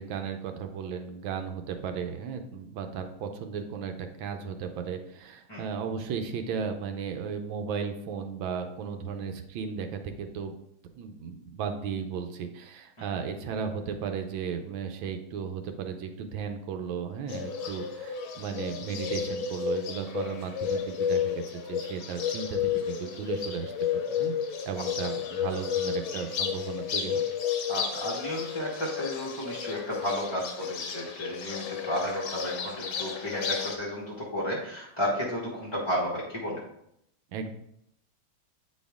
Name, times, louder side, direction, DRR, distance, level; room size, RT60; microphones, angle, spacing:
voice 1, 0.0-10.5 10.9-24.3 24.7-27.2 37.3-37.5, right 6 dB, 80° right, 6 dB, 1.4 m, -35 dB
Bird, 17.3-33.8, left 7 dB, 80° left, 1.7 m, -32 dB
voice 2, 27.7-36.6, equal, 20° left, -7 dB, 0.8 m, -32 dB
8.4 x 4.2 x 3.5 m, 0.76 s
omnidirectional pair, 2.2 m